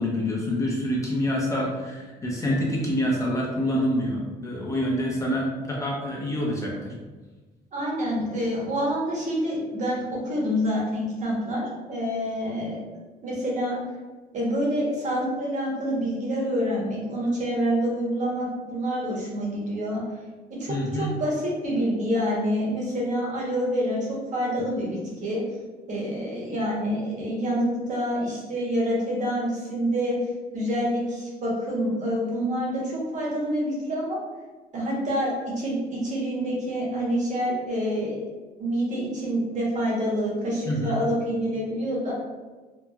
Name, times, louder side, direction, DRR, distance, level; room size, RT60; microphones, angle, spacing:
voice 1, 0.0-6.9 20.7-21.1 24.6-24.7 40.6-41.0, equal, 20° left, -3 dB, 0.7 m, -26 dB
voice 2, 7.7-11.6 11.9-12.8 13.2-13.8 14.3-20.0 20.6-25.4 25.9-30.2 30.5-34.2 34.7-38.3 38.6-42.1, equal, 45° right, -4 dB, 1.1 m, -27 dB
3.0 x 2.3 x 2.3 m, 1.3 s
cardioid pair, 110°, 17 cm